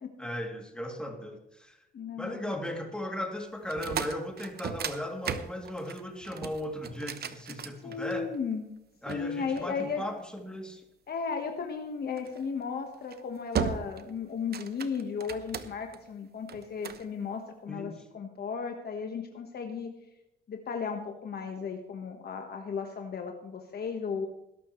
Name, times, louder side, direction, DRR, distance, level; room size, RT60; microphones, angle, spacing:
voice 1, 0.2-1.8 2.2-8.3 9.0-10.8 17.7-18.0, left 1 dB, 5° left, 1 dB, 2.9 m, -37 dB
voice 2, 1.9-2.5 7.6-8.6 9.1-10.0 11.1-19.9 20.5-24.3, left 6 dB, 50° left, 3 dB, 1.4 m, -35 dB
sound 1, 3.6-8.4 9.1-10.4 12.2-12.4 12.9-13.2 13.5-14.1 14.4-16.0 16.5-17.1, right 7 dB, 55° right, 1.0 m, -36 dB
20.0 x 12.0 x 3.2 m, 0.87 s
cardioid pair, 90°, 20 cm